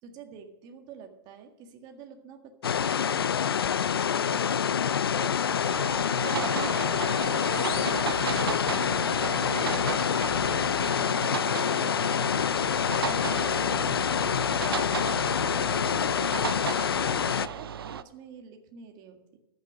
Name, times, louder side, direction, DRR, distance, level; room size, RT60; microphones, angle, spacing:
voice 1, 0.0-3.4 4.3-12.5 13.1-14.6 14.9-16.8 17.2-19.4, right 6 dB, 35° right, 5 dB, 1.8 m, -48 dB
sound 1, 2.6-17.5, left 8 dB, 85° left, 0.5 m, -26 dB
sound 2, 5.6-18.0, right 8 dB, 80° right, 0.6 m, -35 dB
sound 3, 7.5-9.0, left 12 dB, 30° left, 0.8 m, -43 dB
13.5 x 6.7 x 6.5 m, 1.0 s
hypercardioid pair, 125°, 12 cm